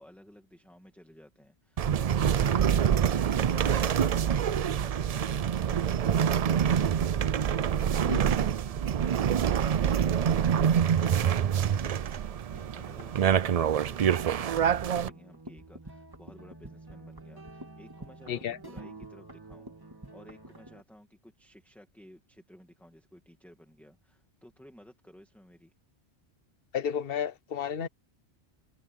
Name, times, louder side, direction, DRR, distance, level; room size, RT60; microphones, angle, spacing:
voice 1, 0.0-25.7, equal, ahead, 2.0 m, -55 dB
sound 1, 1.8-15.1, right 8 dB, 55° right, 0.4 m, -26 dB
sound 2, 12.5-20.8, right 2 dB, 20° right, 2.3 m, -48 dB
voice 2, 26.7-27.9, left 8 dB, 60° left, 1.1 m, -32 dB
omnidirectional pair, 1.1 m